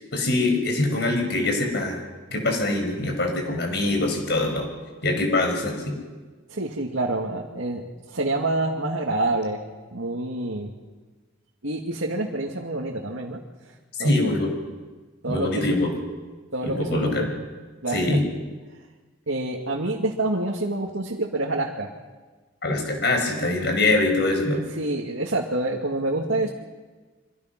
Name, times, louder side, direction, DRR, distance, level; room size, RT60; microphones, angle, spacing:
voice 1, 0.1-2.0 2.3-4.7 5.0-5.9 14.0-14.5 15.3-15.9 16.6-17.3 17.9-18.2 22.6-24.6, left 2 dB, 55° left, 3 dB, 6.1 m, -23 dB
voice 2, 6.5-9.6 9.9-10.7 11.6-13.4 14.0-14.5 15.2-15.6 16.5-17.3 17.8-18.2 19.3-21.9 24.8-26.5, right 2 dB, 90° right, -1 dB, 2.4 m, -27 dB
26.0 x 26.0 x 6.1 m, 1.3 s
head